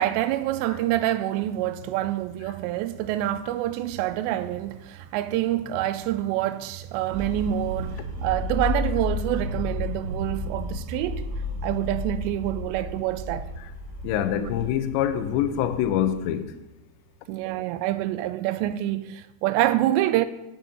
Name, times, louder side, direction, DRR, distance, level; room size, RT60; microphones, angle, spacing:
voice 1, 0.0-11.3 11.6-13.5 14.3-14.5 17.3-20.3, right 13 dB, 90° right, 2.8 m, -26 dB
sound 1, 7.1-16.3, left 2 dB, 70° right, 3.3 m, -32 dB
voice 2, 14.0-16.6, left 10 dB, 85° left, 3.0 m, -25 dB
7.7 x 6.9 x 7.8 m
omnidirectional pair, 5.0 m